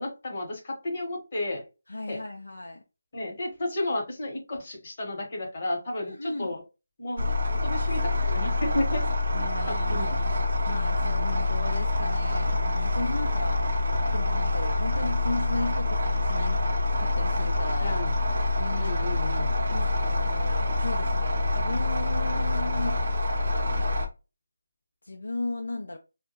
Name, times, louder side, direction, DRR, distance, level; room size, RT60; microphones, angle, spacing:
voice 1, 0.0-1.6 2.1-2.2 3.1-6.6 7.0-9.0 9.7-10.2 17.8-18.1 18.7-19.5, left 1 dB, 35° left, 1.0 m, -32 dB
voice 2, 1.9-2.8 6.0-6.5 9.3-13.6 14.1-16.7 17.0-18.0 18.3-19.1 19.7-23.0 25.0-26.0, left 2 dB, 90° left, 0.4 m, -36 dB
sound 1, 7.2-24.1, left 2 dB, 60° right, 0.6 m, -26 dB
2.2 x 2.1 x 2.9 m
figure-of-eight pair, 170°, 0 cm